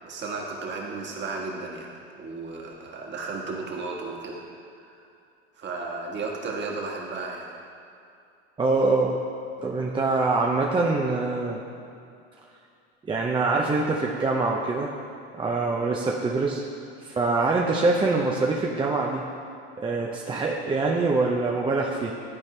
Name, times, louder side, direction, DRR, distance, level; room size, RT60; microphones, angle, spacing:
voice 1, 0.0-1.9 2.2-4.4 4.7-5.1 5.5-7.5, right 3 dB, 35° right, -1 dB, 1.5 m, -34 dB
voice 2, 8.6-9.2 9.6-11.6 13.0-14.9 15.3-16.6 17.0-19.3 19.8-22.1, right 3 dB, 15° right, -2 dB, 0.6 m, -24 dB
12.0 x 4.3 x 3.2 m, 2.5 s
hypercardioid pair, 100°, 33 cm